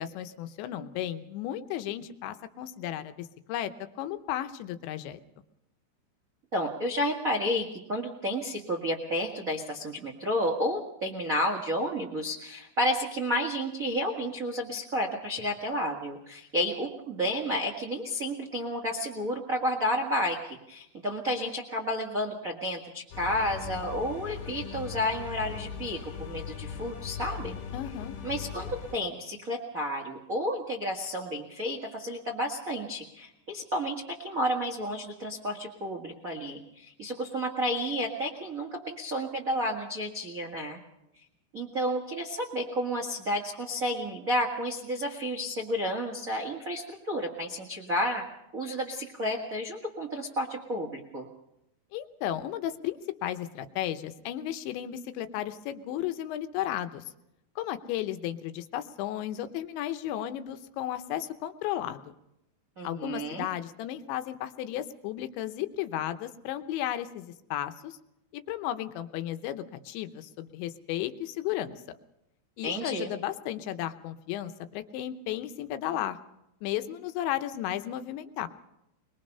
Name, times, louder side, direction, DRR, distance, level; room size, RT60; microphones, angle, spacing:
voice 1, 0.0-3.7 4.0-5.2 27.7-28.2 51.9-57.0 57.6-62.0 62.8-68.0 68.3-71.8 72.6-76.2 76.6-78.5, left 12 dB, 80° left, 10 dB, 3.2 m, -34 dB
voice 2, 6.5-27.6 28.2-40.8 41.5-48.2 48.5-51.3 62.8-63.4 72.6-73.1, equal, 80° right, 1 dB, 0.7 m, -31 dB
sound 1, 23.1-28.9, left 7 dB, 65° left, 4.3 m, -39 dB
22.0 x 22.0 x 5.5 m, 0.85 s
omnidirectional pair, 5.3 m